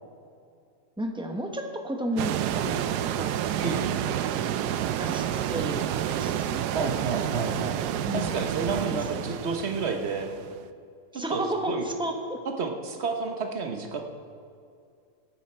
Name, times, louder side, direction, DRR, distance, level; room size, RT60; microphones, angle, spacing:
voice 1, 1.0-2.9 3.1-3.4 5.0-7.0 8.1-8.4 8.7-8.9 11.1-12.4, right 1 dB, 5° right, 3 dB, 0.4 m, -32 dB
sound 1, 2.2-10.6, right 10 dB, 75° right, 1.1 m, -29 dB
voice 2, 3.6-4.0 6.7-7.8 8.1-10.3 11.1-11.8 12.4-14.0, right 4 dB, 45° right, 4 dB, 1.1 m, -30 dB
18.5 x 9.2 x 4.4 m, 2.4 s
omnidirectional pair, 1.9 m